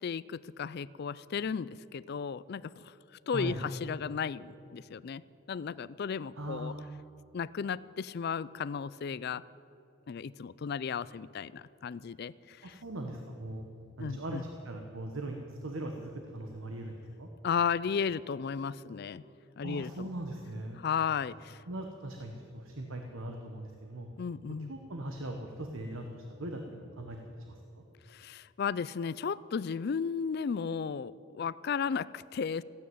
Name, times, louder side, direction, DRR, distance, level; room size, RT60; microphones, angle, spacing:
voice 1, 0.0-2.9 3.3-5.2 5.5-6.7 7.3-9.4 10.1-12.8 14.0-14.5 17.4-19.2 19.6-20.1 20.8-21.6 24.2-24.7 28.1-32.6, left 6 dB, 45° left, 19 dB, 0.3 m, -34 dB
voice 2, 6.4-6.9 12.6-13.6 14.0-17.3 19.6-20.8 21.7-24.1 24.7-27.2 27.5-27.8, right 1 dB, 65° right, 4 dB, 1.1 m, -40 dB
15.0 x 9.5 x 9.4 m, 2.8 s
head